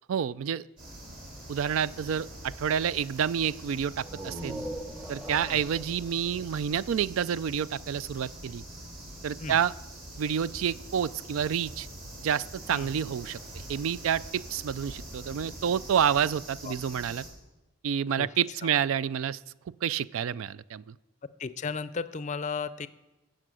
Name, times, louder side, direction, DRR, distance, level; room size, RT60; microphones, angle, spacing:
voice 1, 0.1-0.6 1.5-4.6 5.1-8.6 9.2-9.7 10.2-11.9 12.2-13.4 13.7-17.2 17.8-19.4 19.8-21.0, right 8 dB, 80° right, 19 dB, 0.3 m, -29 dB
sound 1, 0.8-17.3, right 1 dB, 40° right, 4.2 m, -44 dB
sound 2, 4.0-7.6, right 1 dB, 10° right, 0.8 m, -41 dB
voice 2, 21.4-22.9, left 5 dB, 35° left, 14 dB, 0.4 m, -35 dB
15.5 x 7.5 x 6.3 m, 1.1 s
head